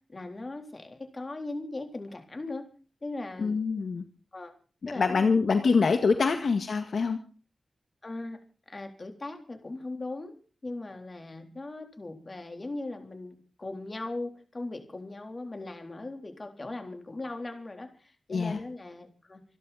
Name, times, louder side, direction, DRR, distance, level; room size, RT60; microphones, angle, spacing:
voice 1, 0.1-2.6 3.0-3.6 4.3-4.5 4.9-5.3 5.6-5.7 6.2-6.3 8.0-8.4 8.7-10.4 10.6-19.4, left 2 dB, 30° left, 5 dB, 3.7 m, -39 dB
voice 2, 3.4-4.0 4.8-7.2 18.3-18.6, left 4 dB, 65° left, 6 dB, 1.9 m, -25 dB
27.0 x 11.0 x 4.3 m, 0.38 s
wide cardioid pair, 145°, 0 cm